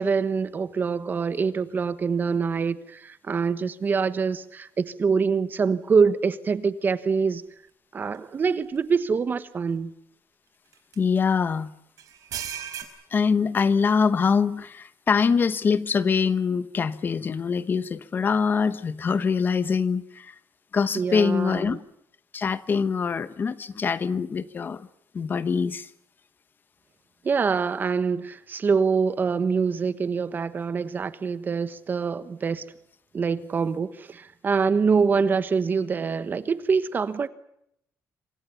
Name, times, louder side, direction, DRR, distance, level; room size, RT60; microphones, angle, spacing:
voice 1, 0.0-7.4 7.9-9.9 20.9-21.8 27.2-32.6 33.1-37.3, right 5 dB, 30° right, 1.3 m, -25 dB
sound 1, 8.1-8.2 8.8-8.9 10.7-10.9 12.0-12.8, right 10 dB, 70° right, 4.8 m, -34 dB
voice 2, 11.0-11.7 13.1-20.3 20.7-21.8 22.3-24.9 25.1-25.9, left 5 dB, 35° left, 1.0 m, -24 dB
27.0 x 25.0 x 7.1 m
cardioid pair, 165°, 6 cm